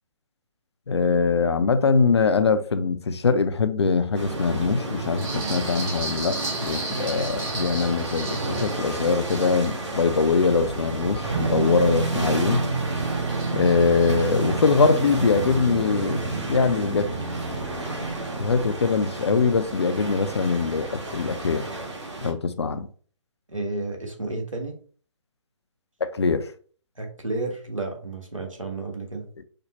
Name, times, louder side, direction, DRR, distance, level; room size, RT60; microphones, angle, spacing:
voice 1, 0.9-12.7 13.5-16.2 16.5-17.0 18.4-21.7 22.2-22.9 26.0-26.5, left 4 dB, 55° left, 0.5 m, -22 dB
sound 1, 4.1-22.3, right 2 dB, 60° right, 1.7 m, -32 dB
sound 2, 5.2-11.9 12.3-14.1, right 2 dB, 10° right, 0.9 m, -37 dB
sound 3, 11.3-18.7, right 3 dB, 30° right, 0.4 m, -30 dB
voice 2, 23.5-24.8 27.0-29.3, right 2 dB, 80° right, 1.5 m, -31 dB
5.1 x 2.1 x 4.1 m
figure-of-eight pair, 140°, 16 cm